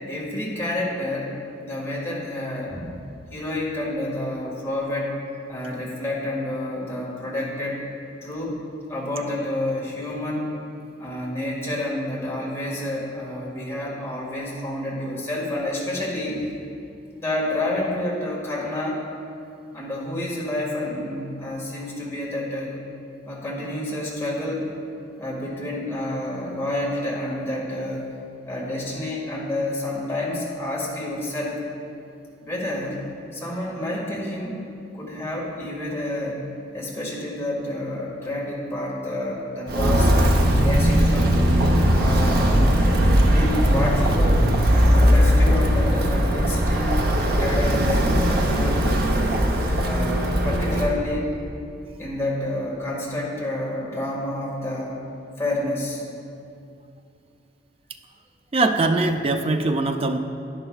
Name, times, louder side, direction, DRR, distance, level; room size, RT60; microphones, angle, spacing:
voice 1, 0.1-1.4 1.6-3.0 3.3-5.2 5.5-7.9 8.2-8.6 8.9-10.5 11.0-16.5 17.2-19.0 19.7-22.8 23.3-24.7 25.2-28.1 28.5-31.6 32.4-33.1 33.3-34.7 34.9-40.2 40.4-41.4 41.9-42.4 43.2-44.5 44.9-48.9 49.8-51.4 52.0-55.0 55.4-56.0, left 1 dB, 15° left, -5 dB, 1.8 m, -29 dB
Walk footsteps, 39.7-50.9, equal, 55° right, 0.8 m, -19 dB
voice 2, 58.5-60.2, right 2 dB, 30° right, 6 dB, 0.4 m, -21 dB
11.0 x 10.0 x 2.4 m, 2.5 s
head